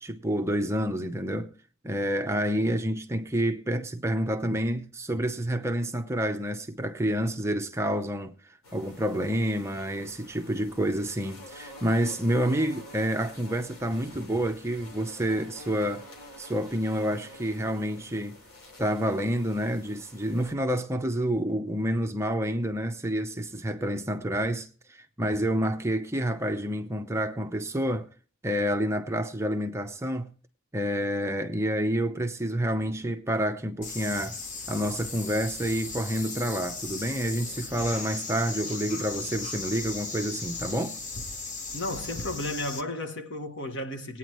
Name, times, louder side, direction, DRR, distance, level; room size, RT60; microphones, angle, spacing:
voice 1, 0.0-1.5 1.8-8.3 8.7-16.0 16.4-18.4 18.8-28.1 28.4-30.3 30.7-34.4 34.7-41.0, equal, 15° right, 0.7 m, -28 dB
sound 1, 8.6-20.5, left 1 dB, 80° left, 3.0 m, -48 dB
sound 2, 33.8-42.8, left 3 dB, 35° left, 1.1 m, -37 dB
voice 2, 41.7-44.2, left 1 dB, 60° left, 1.5 m, -33 dB
20.0 x 9.3 x 3.1 m
head